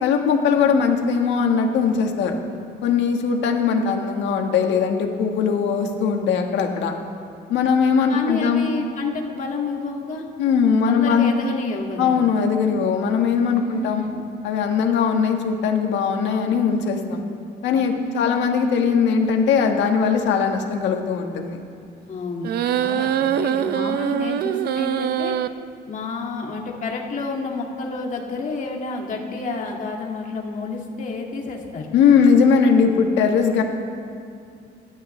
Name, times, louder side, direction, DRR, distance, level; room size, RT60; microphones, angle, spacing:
voice 1, 0.0-2.4 2.8-6.9 7.5-8.7 10.4-11.3 12.0-14.0 14.4-17.2 17.6-21.6 31.9-33.6, left 6 dB, 90° left, 3 dB, 1.6 m, -20 dB
voice 2, 7.6-10.3 10.9-12.2 13.6-14.3 17.9-18.4 22.1-25.4 25.9-31.9, left 3 dB, 45° left, 0 dB, 2.2 m, -30 dB
sound 1, 22.4-25.5, right 10 dB, 60° right, 0.5 m, -23 dB
27.5 x 11.5 x 3.3 m, 2.3 s
cardioid pair, 150°, 18 cm